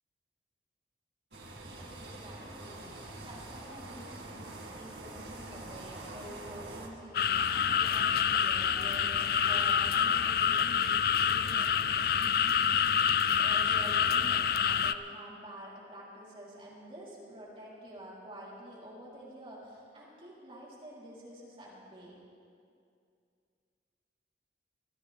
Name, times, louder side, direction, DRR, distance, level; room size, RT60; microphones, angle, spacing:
sound 1, 1.3-6.9, right 2 dB, 75° right, 2.1 m, -45 dB
voice 1, 1.9-2.9 3.2-22.2, equal, 30° right, -7 dB, 3.9 m, -48 dB
sound 2, 7.1-14.9, left 7 dB, 55° left, 0.4 m, -27 dB
24.5 x 14.5 x 3.6 m, 2.4 s
head